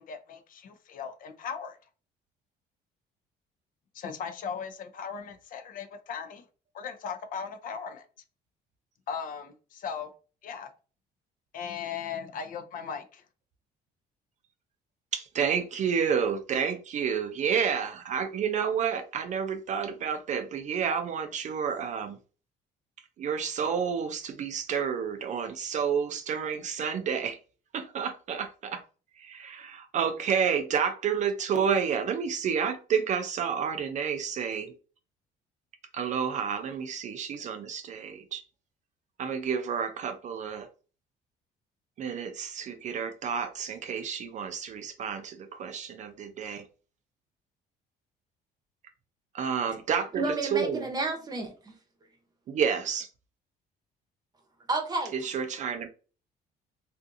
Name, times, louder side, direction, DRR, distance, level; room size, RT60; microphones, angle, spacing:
voice 1, 0.0-1.8 3.9-6.4 6.7-8.1 9.1-10.1 10.4-10.7 11.5-13.2, left 6 dB, 55° left, 0.4 m, -38 dB
voice 2, 15.1-22.2 23.2-27.4 27.7-28.8 29.2-34.7 35.9-38.4 39.2-40.7 42.0-46.6 49.3-50.9 52.5-53.1 55.1-55.9, right 7 dB, 45° right, 0.4 m, -30 dB
voice 3, 50.1-51.7 54.7-55.1, right 3 dB, 25° right, 0.8 m, -31 dB
2.5 x 2.4 x 2.5 m
cardioid pair, 110°, 17 cm